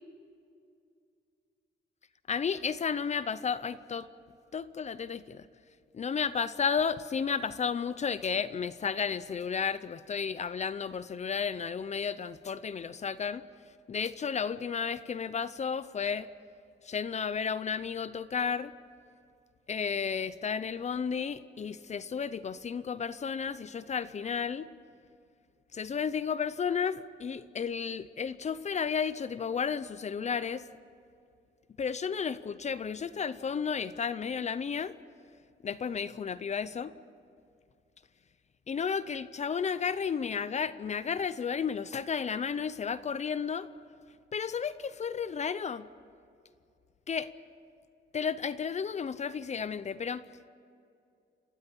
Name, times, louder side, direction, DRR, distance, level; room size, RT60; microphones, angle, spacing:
voice 1, 2.3-4.1 4.5-5.5 5.9-13.4 13.9-16.3 16.8-18.7 19.7-24.7 25.7-30.6 31.8-34.9 35.6-36.9 38.7-43.7 44.3-45.9 47.1-47.3 48.1-50.2, left 6 dB, 40° left, 15 dB, 0.6 m, -32 dB
29.0 x 13.0 x 9.8 m, 2.4 s
wide cardioid pair, 145°, 19 cm